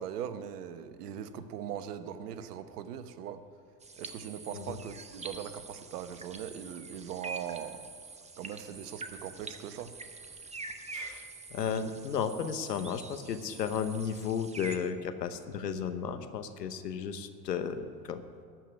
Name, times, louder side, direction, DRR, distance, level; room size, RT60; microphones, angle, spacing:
voice 1, 0.0-3.4 4.0-7.9 8.4-9.9, right 9 dB, 70° right, 11 dB, 1.1 m, -40 dB
sound 1, 3.8-14.8, right 4 dB, 15° right, 1.1 m, -45 dB
voice 2, 10.9-18.2, left 7 dB, 85° left, 10 dB, 1.1 m, -34 dB
14.5 x 5.9 x 9.7 m, 2.3 s
hypercardioid pair, 80°, 47 cm